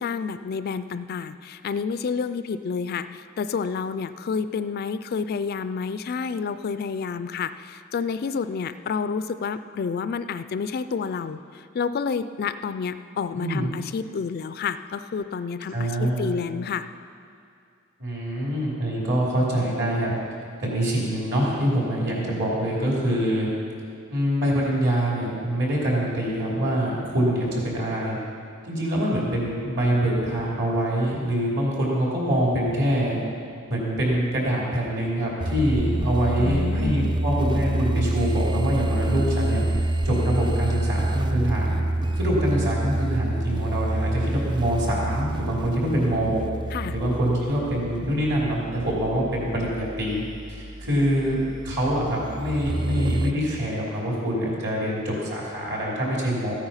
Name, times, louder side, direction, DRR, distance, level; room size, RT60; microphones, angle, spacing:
voice 1, 0.0-16.9 36.4-37.3 46.7-47.0, left 5 dB, 45° left, 12 dB, 0.3 m, -29 dB
voice 2, 13.3-13.7 15.7-16.3 18.0-20.1 20.6-23.5 24.1-28.2 28.6-33.2 33.7-39.6 40.0-41.8 42.1-46.4 46.9-50.2 50.5-56.5, right 1 dB, 55° right, -4 dB, 3.3 m, -25 dB
sound 1, 35.4-53.3, right 1 dB, 20° right, 0.4 m, -27 dB
14.5 x 8.9 x 5.6 m, 2.4 s
head